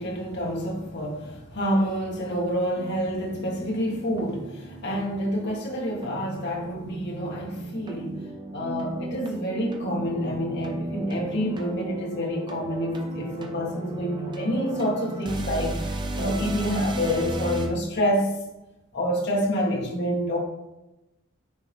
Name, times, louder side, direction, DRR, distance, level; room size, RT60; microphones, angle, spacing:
voice 1, 0.0-8.3 8.5-18.3 18.9-20.4, equal, 55° left, -2 dB, 1.6 m, -28 dB
sound 1, 2.7-17.7, right 2 dB, 20° right, 0.7 m, -35 dB
9.1 x 3.7 x 3.5 m, 0.96 s
head